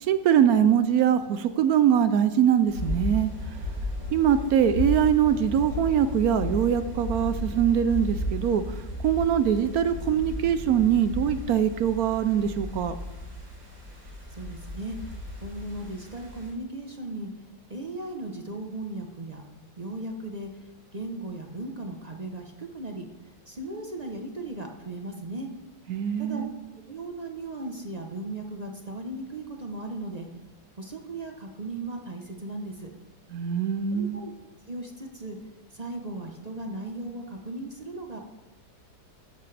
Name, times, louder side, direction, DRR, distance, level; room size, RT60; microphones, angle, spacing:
voice 1, 0.0-3.3 4.1-8.8 9.0-13.0 25.9-26.5 33.3-34.2, right 9 dB, 70° right, 11 dB, 0.9 m, -23 dB
sound 1, 2.7-16.5, left 1 dB, 85° right, 5.1 m, -34 dB
voice 2, 14.3-17.3 17.7-19.4 19.8-20.6 20.9-23.1 23.5-25.5 26.2-26.4 26.9-30.3 30.8-32.9 33.9-34.3 34.7-35.4 35.7-38.2, right 2 dB, 35° right, 3 dB, 0.7 m, -37 dB
14.0 x 10.5 x 3.3 m, 1.1 s
omnidirectional pair, 2.0 m